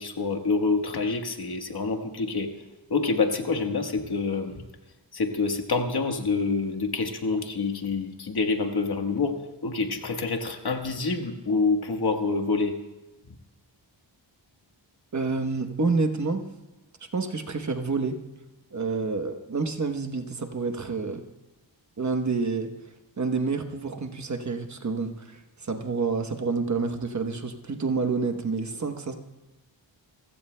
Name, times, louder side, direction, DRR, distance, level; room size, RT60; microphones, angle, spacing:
voice 1, 0.0-2.5 2.9-4.6 5.1-9.4 9.6-12.7, left 4 dB, 55° left, 4 dB, 1.4 m, -27 dB
voice 2, 15.1-16.4 17.1-18.2 18.7-21.2 22.0-22.7 23.2-29.1, right 4 dB, 40° right, 5 dB, 1.0 m, -28 dB
28.5 x 15.5 x 2.2 m, 1.0 s
wide cardioid pair, 155°, 45 cm